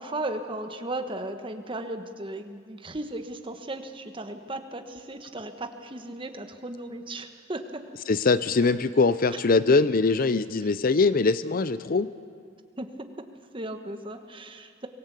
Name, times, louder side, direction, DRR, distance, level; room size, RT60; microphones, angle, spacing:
voice 1, 0.0-7.9 9.3-9.4 12.8-12.9 13.5-14.9, right 2 dB, 25° right, 7 dB, 1.3 m, -36 dB
voice 2, 8.1-12.1, left 3 dB, 45° left, 15 dB, 0.5 m, -22 dB
23.5 x 18.5 x 8.2 m, 2.1 s
head